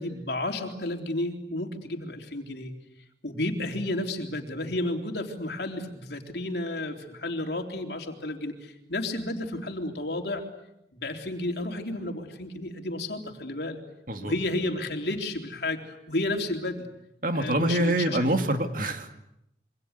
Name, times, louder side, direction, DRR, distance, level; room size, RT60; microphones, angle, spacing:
voice 1, 0.0-2.7 3.2-10.4 10.9-13.8 14.2-16.9 17.3-18.2, left 1 dB, 60° left, 4 dB, 3.7 m, -32 dB
voice 2, 17.2-19.1, right 1 dB, 50° right, 6 dB, 2.5 m, -25 dB
27.0 x 25.0 x 8.3 m, 0.82 s
head